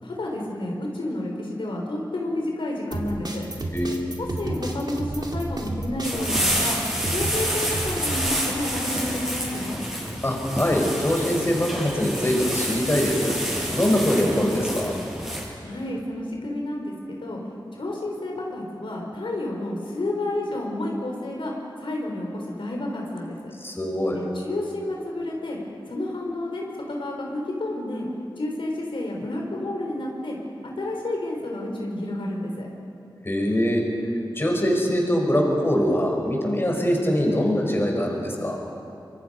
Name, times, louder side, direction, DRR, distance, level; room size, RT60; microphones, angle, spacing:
voice 1, 0.0-3.5 4.2-6.8 7.1-9.8 15.6-17.4 17.7-21.5 21.8-23.4 24.1-25.6 25.9-28.1 28.4-30.4 30.8-32.7, left 1 dB, 90° left, -1 dB, 3.7 m, -30 dB
sound 1, 2.9-8.4, right 1 dB, 55° right, 2.5 m, -31 dB
voice 2, 3.7-4.0 10.2-13.3 13.7-14.9 23.6-24.2 33.2-33.8 34.3-38.6, equal, 30° left, 0 dB, 5.0 m, -23 dB
sound 2, 6.0-15.4, equal, 5° right, 7.3 m, -28 dB
25.0 x 24.0 x 5.5 m, 2.7 s
wide cardioid pair, 60°, 9 cm